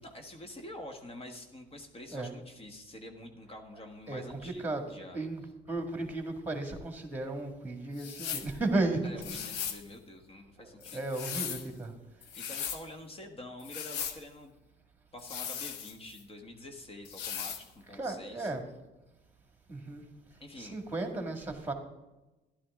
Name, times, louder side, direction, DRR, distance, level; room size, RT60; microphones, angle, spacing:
voice 1, 0.0-5.3 9.0-11.0 12.4-14.5 15.1-18.5 20.4-20.8, left 1 dB, 35° left, 5 dB, 1.5 m, -47 dB
voice 2, 4.1-9.0 10.6-11.9 17.9-18.6 19.7-20.0 20.6-21.7, right 2 dB, 10° right, 5 dB, 2.1 m, -35 dB
sound 1, 8.0-8.5 9.2-9.8 10.8-11.7 12.2-12.8 13.6-14.2 15.2-16.2 17.0-17.6, left 8 dB, 85° left, 1.0 m, -38 dB
12.0 x 11.5 x 3.7 m, 1.0 s
cardioid pair, 110°, 17 cm